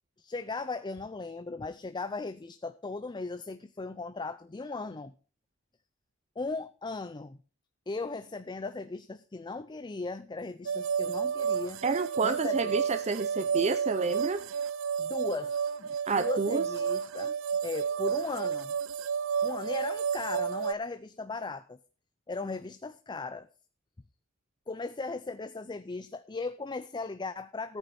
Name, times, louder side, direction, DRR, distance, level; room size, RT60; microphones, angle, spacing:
voice 1, 0.2-5.1 6.4-7.4 7.9-11.8 12.2-12.8 15.0-15.9 16.2-17.4 17.6-18.7 19.4-21.8 22.3-23.5 24.7-27.8, left 3 dB, 20° left, 0.5 m, -37 dB
sound 1, 10.7-20.7, right 7 dB, 85° right, 0.5 m, -31 dB
voice 2, 11.8-14.4 16.1-16.7, right 4 dB, 35° right, 0.6 m, -29 dB
14.5 x 9.1 x 4.3 m
head